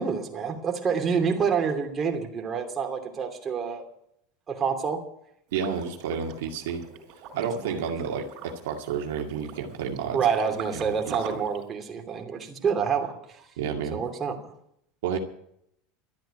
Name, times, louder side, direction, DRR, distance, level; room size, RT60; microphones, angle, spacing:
voice 1, 0.0-3.8 4.5-5.0 7.6-7.8 10.1-13.4 13.9-14.4, right 6 dB, 30° right, 3 dB, 2.8 m, -27 dB
Liquid, 5.5-11.6, right 7 dB, 60° right, 3.8 m, -44 dB
voice 2, 5.5-6.8 7.3-10.2 10.7-11.4 13.6-14.0 15.0-15.2, right 7 dB, 75° right, 2 dB, 2.1 m, -31 dB
13.0 x 9.0 x 8.9 m, 0.73 s
hypercardioid pair, 100°, 0 cm